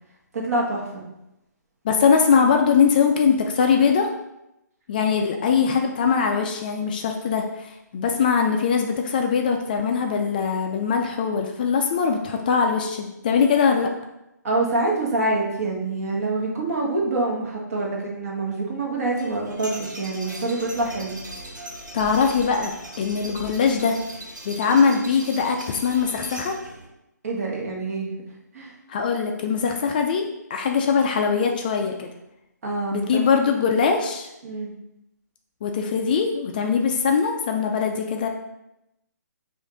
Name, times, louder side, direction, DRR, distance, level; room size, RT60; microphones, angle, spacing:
voice 1, 0.3-1.0 14.4-21.1 27.2-28.1 28.5-28.7 32.6-33.3 34.4-34.7, right 2 dB, 50° right, -3 dB, 1.4 m, -26 dB
voice 2, 1.8-4.1 4.9-13.9 21.9-24.0 24.4-26.6 28.9-32.1 32.9-34.3 35.6-38.3, left 6 dB, 30° left, 3 dB, 0.3 m, -21 dB
sound 1, 19.1-26.9, right 1 dB, 90° right, 1.3 m, -39 dB
5.1 x 2.5 x 3.8 m, 0.88 s
hypercardioid pair, 150°, 10 cm